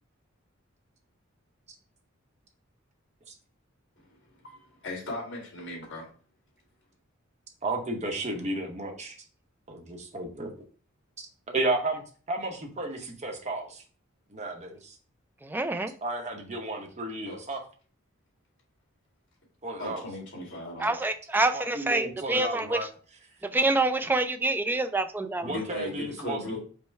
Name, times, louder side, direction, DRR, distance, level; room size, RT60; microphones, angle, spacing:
voice 1, 4.4-6.1 17.2-17.4 19.8-21.1 25.4-26.6, left 1 dB, 65° left, -3 dB, 2.4 m, -37 dB
voice 2, 7.6-9.1 9.7-10.5 11.2-12.0 12.3-13.8 14.3-15.0 16.0-17.6 19.6-20.0 21.5-22.9 25.4-26.6, right 2 dB, 35° right, 2 dB, 0.9 m, -33 dB
voice 3, 15.5-15.9 20.8-22.8 23.5-25.5, right 2 dB, 10° right, 8 dB, 0.3 m, -26 dB
5.2 x 2.2 x 4.5 m, 0.40 s
head